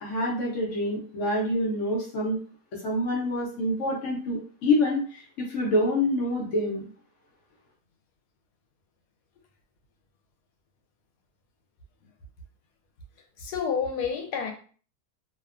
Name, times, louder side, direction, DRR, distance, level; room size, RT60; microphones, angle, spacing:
voice 1, 0.0-2.4 2.8-6.8, left 1 dB, 60° left, -2 dB, 0.8 m, -26 dB
voice 2, 13.4-14.5, left 6 dB, 85° left, 5 dB, 1.1 m, -29 dB
2.8 x 2.1 x 2.4 m, 0.42 s
omnidirectional pair, 1.7 m